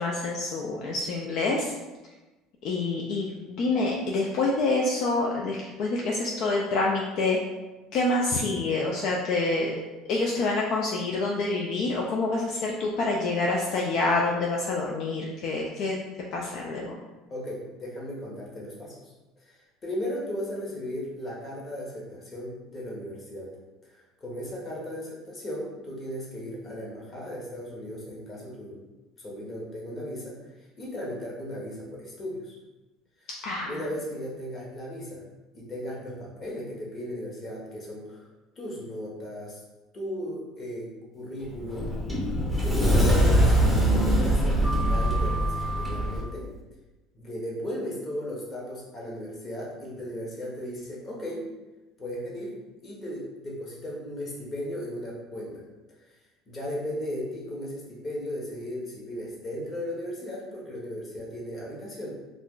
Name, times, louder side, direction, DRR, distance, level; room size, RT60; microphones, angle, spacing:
voice 1, 0.0-1.7 2.6-7.4 7.9-9.8 10.1-16.0 16.3-17.0 33.4-33.7, left 3 dB, 60° left, -2 dB, 0.4 m, -27 dB
voice 2, 17.3-19.0 19.4-23.5 23.8-28.8 29.2-32.5 33.2-33.3 33.7-35.2 35.5-38.3 38.6-39.6 39.9-42.0 42.6-43.6 43.9-46.4 47.1-51.4 52.0-52.5 52.8-55.6 56.5-62.1, equal, 30° left, -4 dB, 1.0 m, -36 dB
Sliding door, 41.4-46.2, equal, ahead, 0.6 m, -23 dB
2.4 x 2.2 x 3.6 m, 1.1 s
supercardioid pair, 110°, 0 cm